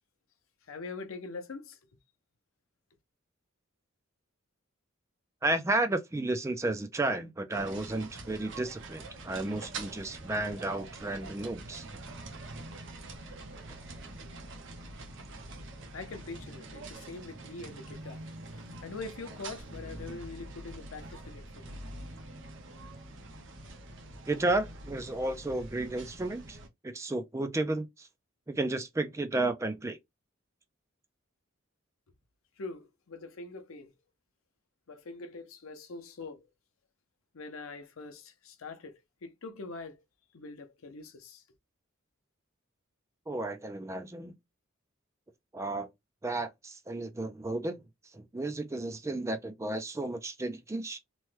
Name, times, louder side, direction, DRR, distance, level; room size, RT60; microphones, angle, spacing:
voice 1, 0.7-1.8 15.9-18.2 18.8-21.6 32.6-33.9 34.9-36.4 37.3-40.0 40.3-41.4, left 3 dB, 75° left, 0.6 m, -43 dB
voice 2, 5.4-11.9 24.3-26.6 26.8-28.1 28.5-30.0 43.3-44.3 45.5-45.9 46.2-47.8 48.1-51.0, right 2 dB, 15° right, 0.4 m, -32 dB
sound 1, 7.5-26.7, right 2 dB, 60° right, 0.8 m, -45 dB
3.0 x 2.2 x 3.2 m
head